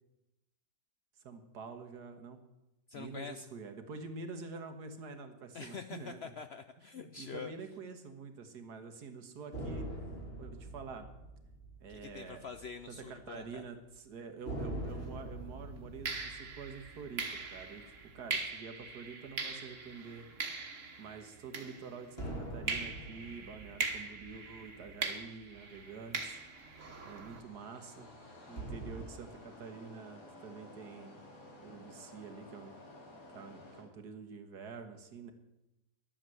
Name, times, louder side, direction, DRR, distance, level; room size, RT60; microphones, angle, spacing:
voice 1, 1.2-2.4 2.9-6.3 6.9-9.9 10.4-11.1 11.8-12.5 12.9-17.8 18.1-20.3 21.0-26.4 27.1-28.1 28.5-31.2 31.6-32.7 33.3-35.3, right 4 dB, 85° right, 7 dB, 1.9 m, -47 dB
voice 2, 2.9-3.5 5.5-7.5 11.9-13.7, left 6 dB, 65° left, 9 dB, 0.6 m, -45 dB
sound 1, 9.5-13.2 13.5-13.7 14.4-19.1 22.2-25.8 28.6-29.0, right 1 dB, 40° left, 3.0 m, -44 dB
sound 2, 14.9-15.1 16.0-22.2 22.7-27.4, right 4 dB, 55° right, 1.7 m, -41 dB
sound 3, 25.5-33.8, left 2 dB, 85° left, 3.2 m, -54 dB
11.5 x 8.8 x 7.7 m, 0.94 s
omnidirectional pair, 1.7 m